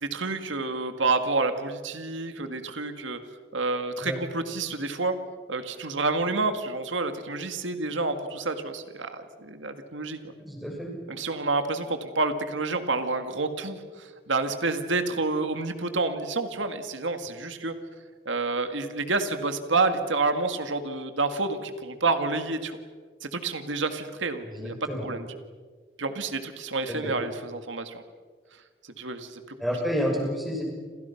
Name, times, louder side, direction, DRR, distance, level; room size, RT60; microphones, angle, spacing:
voice 1, 0.0-3.2 3.5-5.2 5.5-10.3 11.1-17.7 18.3-22.8 23.2-24.7 25.0-25.3 26.0-28.0 29.0-29.4, right 3 dB, 80° right, 8 dB, 2.0 m, -29 dB
voice 2, 10.4-10.9 24.5-25.1 26.9-27.2 29.6-30.6, equal, ahead, 0 dB, 6.2 m, -30 dB
30.0 x 28.5 x 5.9 m, 1.5 s
head